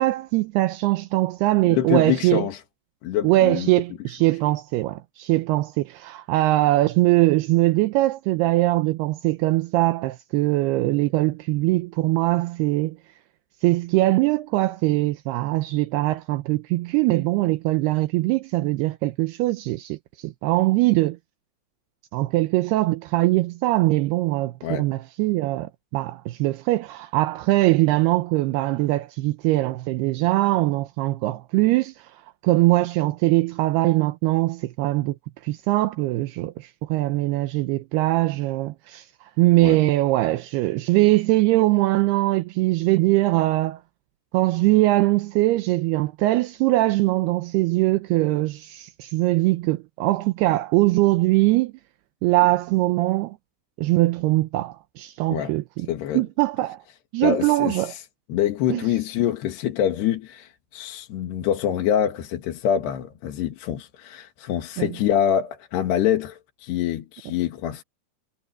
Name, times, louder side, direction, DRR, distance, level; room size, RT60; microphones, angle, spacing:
voice 1, 0.0-2.5 3.2-13.0 13.6-21.2 22.1-35.2 35.4-43.8 44.3-51.7 52.2-53.4 53.8-55.9 56.1-56.8 57.1-57.9 58.7-58.9 64.8-64.9, right 18 dB, 80° right, 2.7 m, -22 dB
voice 2, 1.7-2.6 3.0-3.7 24.6-24.9 39.6-39.8 55.3-55.5 55.9-56.2 57.2-58.0 58.3-67.8, left 10 dB, 75° left, 3.9 m, -25 dB
omnidirectional pair, 4.8 m